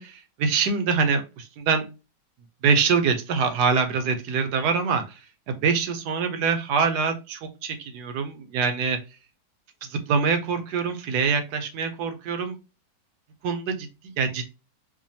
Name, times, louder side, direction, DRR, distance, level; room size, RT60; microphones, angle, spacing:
voice 1, 0.0-1.9 2.6-5.2 5.5-9.0 9.8-12.6 13.4-14.5, right 5 dB, 70° right, 7 dB, 1.2 m, -24 dB
5.0 x 2.3 x 2.7 m, 0.29 s
omnidirectional pair, 1.9 m